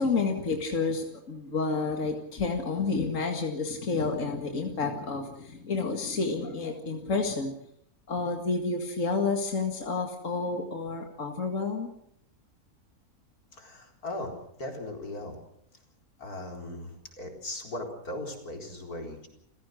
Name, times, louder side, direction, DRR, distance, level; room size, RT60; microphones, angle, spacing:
voice 1, 0.0-7.6 8.1-11.9, left 4 dB, 60° left, 3 dB, 2.4 m, -30 dB
voice 2, 13.5-15.4 16.2-19.3, left 1 dB, 85° left, 2 dB, 4.7 m, -38 dB
29.0 x 16.0 x 6.4 m, 0.72 s
omnidirectional pair, 1.6 m